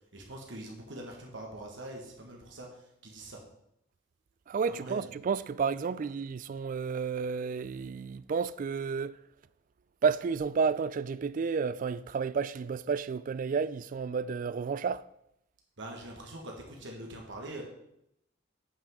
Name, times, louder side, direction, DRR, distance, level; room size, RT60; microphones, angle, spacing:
voice 1, 0.1-3.4 4.6-5.1 15.8-17.6, right 1 dB, 70° right, 1.5 m, -43 dB
voice 2, 4.5-9.2 10.0-15.1, right 5 dB, 45° right, 0.3 m, -31 dB
8.7 x 5.9 x 4.7 m
head